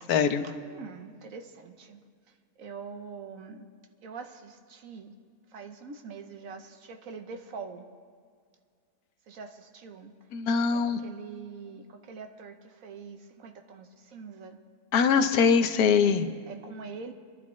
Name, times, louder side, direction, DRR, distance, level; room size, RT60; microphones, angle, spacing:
voice 1, 0.1-0.5 10.3-11.0 14.9-16.3, left 6 dB, 80° left, 9 dB, 1.3 m, -23 dB
voice 2, 0.7-2.0 2.6-3.6 4.0-5.1 5.5-7.8 9.3-10.1 10.7-12.5 12.8-14.6 16.5-17.1, right 5 dB, 65° right, 6 dB, 1.2 m, -43 dB
25.0 x 11.5 x 3.1 m, 2.1 s
omnidirectional pair, 1.6 m